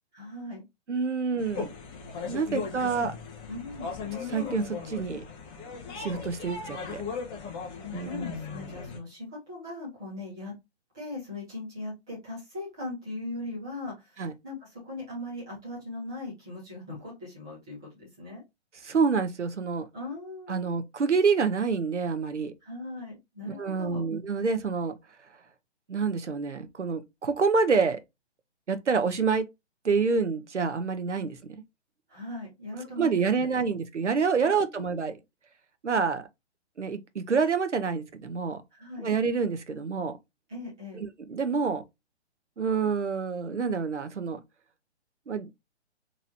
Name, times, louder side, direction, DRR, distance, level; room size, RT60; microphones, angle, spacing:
voice 1, 0.1-0.6 3.5-3.9 7.6-10.5 10.9-18.4 19.9-20.8 22.6-24.0 32.1-33.5 34.4-34.8 38.7-39.1 40.5-41.0, left 2 dB, 5° right, 0.3 m, -39 dB
voice 2, 0.9-1.7 2.3-3.1 4.3-5.2 6.0-7.0 7.9-8.2 14.2-14.3 18.8-19.9 20.5-22.5 23.5-24.9 25.9-28.0 28.7-29.5 29.8-31.4 33.0-35.2 35.8-36.3 36.8-38.6 39.0-40.1 41.0-41.8 42.6-44.4 45.3-45.5, right 5 dB, 90° right, 0.9 m, -27 dB
sound 1, 1.4-9.0, left 5 dB, 15° left, 0.8 m, -37 dB
4.2 x 2.9 x 2.6 m
figure-of-eight pair, 135°, 34 cm